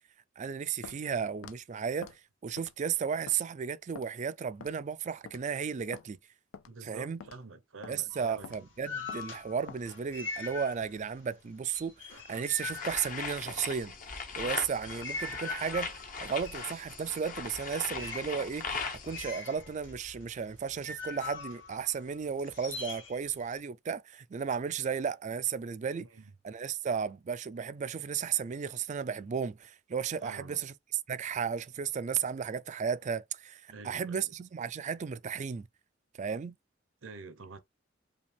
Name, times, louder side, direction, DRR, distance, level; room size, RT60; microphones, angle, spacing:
voice 1, 0.4-6.2 6.8-7.2 7.9-13.9 14.4-15.9 16.2-26.1 26.4-30.7 31.1-35.7 36.2-36.6, right 7 dB, 40° right, 0.3 m, -34 dB
Walk footsteps, 0.8-1.0 1.4-1.6 2.0-2.2 2.6-2.9 3.3-3.4 3.9-4.1 4.6-4.8 5.3-5.5 5.9-6.1 6.5-6.7 7.2-7.4 7.8-8.0 8.4-8.6 9.1-9.3 9.7-9.8, left 6 dB, 90° left, 0.4 m, -47 dB
voice 2, 6.7-8.7 20.6-20.7 26.0-26.3 30.2-30.6 33.7-34.3 37.0-37.6, right 3 dB, 85° right, 0.9 m, -48 dB
sound 1, 8.1-11.2 11.5-13.7 14.4-23.6, left 4 dB, 70° left, 2.0 m, -43 dB
sound 2, 12.6-19.3, left 5 dB, 45° left, 0.9 m, -39 dB
5.1 x 2.3 x 3.4 m
head